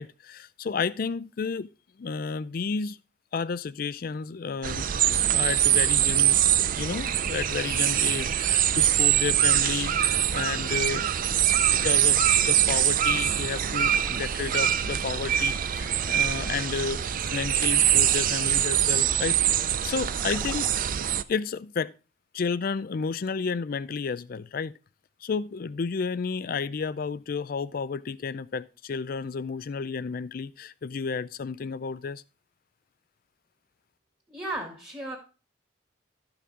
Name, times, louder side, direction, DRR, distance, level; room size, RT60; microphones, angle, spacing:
voice 1, 0.0-1.7 2.0-3.0 3.3-12.2 12.4-20.7 21.3-21.9 22.3-24.7 25.2-32.2, left 5 dB, 50° left, 0.4 m, -32 dB
sound 1, 4.6-21.2, right 11 dB, 50° right, 0.4 m, -24 dB
sound 2, 13.5-14.7 15.1-21.0, left 1 dB, 5° left, 0.7 m, -48 dB
voice 2, 34.3-35.2, right 1 dB, 15° right, 2.1 m, -35 dB
12.5 x 5.9 x 3.6 m
head